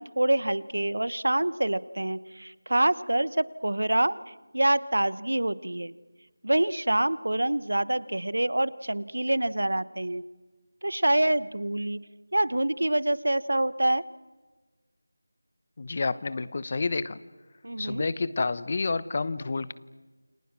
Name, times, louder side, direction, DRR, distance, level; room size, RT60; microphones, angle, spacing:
voice 1, 0.0-5.9 6.4-10.2 10.8-12.0 12.3-14.1 17.6-18.0, right 1 dB, 80° right, 18 dB, 1.1 m, -26 dB
voice 2, 15.8-17.2 17.8-19.7, left 3 dB, 35° left, 17 dB, 0.9 m, -29 dB
29.0 x 26.0 x 6.1 m, 1.3 s
figure-of-eight pair, 170°, 0 cm